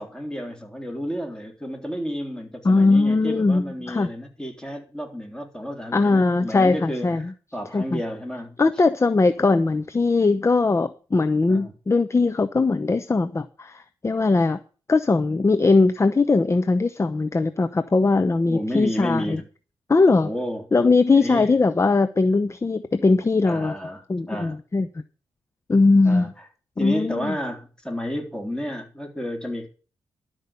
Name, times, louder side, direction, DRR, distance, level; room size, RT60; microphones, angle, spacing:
voice 1, 0.0-8.6 11.5-11.7 18.4-19.5 20.2-20.7 21.2-21.5 23.4-24.6 26.1-26.3 26.8-29.7, equal, 5° left, 3.6 m, -31 dB
voice 2, 2.6-4.1 5.9-7.3 7.7-8.0 8.6-14.6 14.9-19.4 19.9-20.3 20.7-23.7 24.1-24.9 25.7-26.3 26.8-27.4, left 3 dB, 30° left, 0.8 m, -20 dB
12.0 x 5.3 x 8.2 m
cardioid pair, 70°, 10 cm